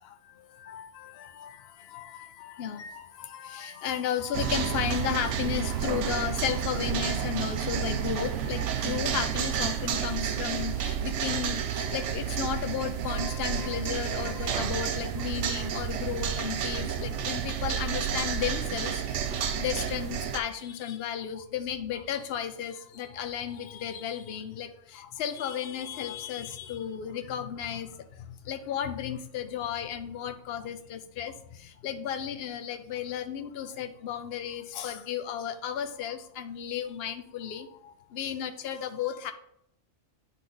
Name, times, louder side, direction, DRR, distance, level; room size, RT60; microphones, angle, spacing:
voice 1, 0.0-19.2 19.6-39.3, left 9 dB, 60° left, 8 dB, 0.9 m, -34 dB
radiator noise, 4.3-20.4, right 8 dB, 85° right, 1.0 m, -30 dB
9.4 x 4.1 x 3.9 m, 0.71 s
omnidirectional pair, 1.2 m